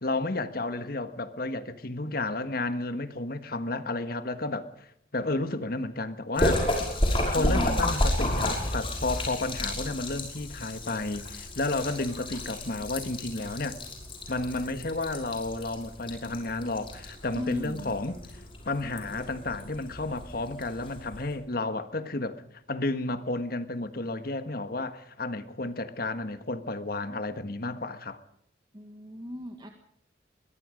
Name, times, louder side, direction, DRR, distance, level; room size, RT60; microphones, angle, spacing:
voice 1, 0.0-4.9 5.1-6.6 7.1-13.8 14.3-18.2 18.6-22.4 22.7-28.2, left 2 dB, 50° left, 1.6 m, -32 dB
Splash splatter, 6.4-21.4, left 1 dB, 30° left, 5.9 m, -32 dB
voice 2, 7.4-7.9 17.3-18.0 28.7-29.7, left 1 dB, 25° right, 1.8 m, -36 dB
23.0 x 22.0 x 5.2 m
head